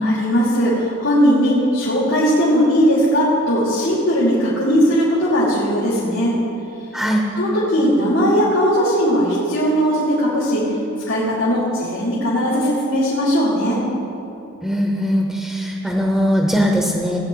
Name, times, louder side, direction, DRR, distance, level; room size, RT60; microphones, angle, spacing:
voice 1, 0.0-6.4 7.3-10.7 11.1-13.8, equal, 85° left, -8 dB, 3.0 m, -18 dB
voice 2, 6.9-7.2 14.6-17.2, equal, ahead, 0 dB, 0.8 m, -20 dB
18.0 x 8.9 x 3.9 m, 2.8 s
head